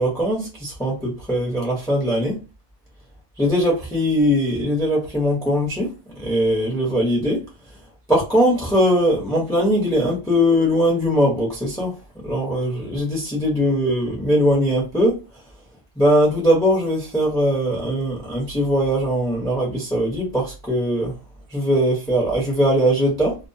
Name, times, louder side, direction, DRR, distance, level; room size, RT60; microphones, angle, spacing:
voice 1, 0.0-2.4 3.4-5.9 6.2-7.4 8.1-11.9 12.2-15.2 16.0-21.1 21.5-23.4, equal, 5° left, 0.5 m, -20 dB
2.2 x 2.2 x 2.6 m
omnidirectional pair, 1.5 m